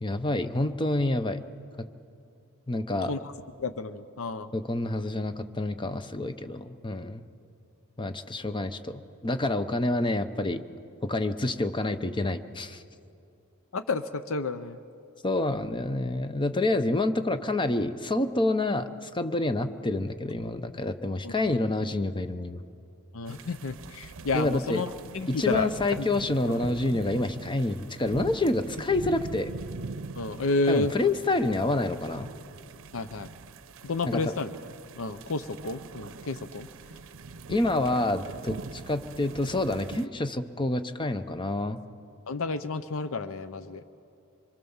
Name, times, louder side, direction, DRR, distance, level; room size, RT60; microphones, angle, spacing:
voice 1, 0.0-1.4 1.8-1.9 2.7-3.1 4.5-7.2 8.0-10.6 11.0-12.8 15.2-22.6 24.3-24.8 25.3-29.5 30.7-32.3 34.1-34.3 37.5-41.8, left 2 dB, 20° left, 10 dB, 0.8 m, -28 dB
voice 2, 3.6-4.5 13.7-14.8 21.2-21.3 23.1-25.7 26.0-26.1 30.1-30.9 32.9-33.3 33.8-34.5 35.0-36.7 42.3-43.8, left 3 dB, 65° left, 11 dB, 0.7 m, -30 dB
sound 1, 23.3-40.1, right 3 dB, 65° right, 0.7 m, -43 dB
25.0 x 23.0 x 7.2 m, 2.6 s
head